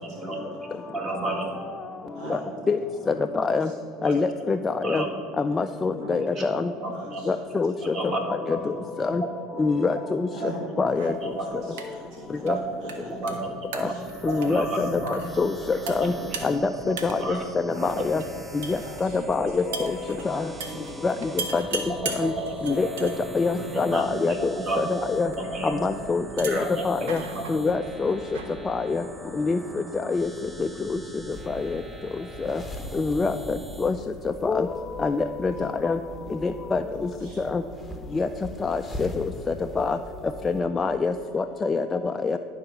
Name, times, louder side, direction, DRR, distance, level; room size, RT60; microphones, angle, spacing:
voice 1, 0.0-0.6 0.9-1.5 4.0-4.2 4.8-5.1 6.2-6.4 6.8-7.2 7.8-8.6 9.2-9.3 10.4-10.7 11.1-11.6 12.4-13.9 14.2-15.3 15.9-17.4 17.8-18.0 19.4-19.8 21.9-23.2 23.5-24.9 25.2-25.8 26.5-27.7, right 2 dB, 40° right, 1 dB, 1.9 m, -32 dB
voice 2, 0.7-1.2 2.1-2.7 3.0-3.2 3.6-3.8 4.1-4.2 4.7-4.9 6.0-7.8 8.6-9.1 10.3-11.1 11.4-13.3 13.8-14.0 14.3-14.4 14.7-14.9 15.8-15.9 17.6-18.2 18.5-19.6 19.9-22.0 24.1-24.3 24.9-25.2 35.6-35.7 37.2-37.4, right 1 dB, 65° right, -2 dB, 1.6 m, -45 dB
voice 3, 3.3-3.7 4.0-5.0 5.4-6.7 7.3-8.0 8.5-8.6 9.0-9.2 9.6-10.5 10.8-11.1 12.4-12.6 13.7-13.9 14.2-16.1 16.4-16.6 16.9-17.4 17.6-18.2 18.5-20.0 20.2-20.5 21.0-21.6 22.1-22.3 22.6-23.1 23.3-24.4 24.8-25.3 25.7-27.2 27.5-28.2 28.7-29.0 29.3-29.6 29.9-30.3 30.6-31.0 31.5-31.8 32.4-32.6 32.9-34.0 34.2-34.7 35.0-36.0 36.4-36.8 37.4-37.6 38.1-38.3 38.6-40.0 40.4-42.4, left 4 dB, 20° left, 6 dB, 0.3 m, -25 dB
sound 1, 10.9-29.7, right 4 dB, 85° right, 0.9 m, -41 dB
sound 2, 14.0-34.0, right 2 dB, 15° right, 0.8 m, -44 dB
sound 3, 31.3-40.6, equal, 5° left, 1.2 m, -42 dB
11.5 x 3.9 x 5.8 m, 2.4 s
supercardioid pair, 95°, 0 cm